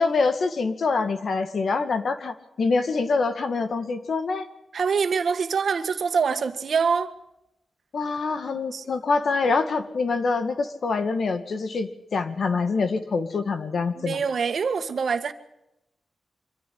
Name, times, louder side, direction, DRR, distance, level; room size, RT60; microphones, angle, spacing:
voice 1, 0.0-4.5 7.9-14.2, left 4 dB, 60° left, 2.1 m, -25 dB
voice 2, 4.7-7.1 8.5-8.8 14.0-15.3, right 5 dB, 70° right, 1.7 m, -25 dB
25.5 x 14.0 x 9.6 m
wide cardioid pair, 145°, 0 cm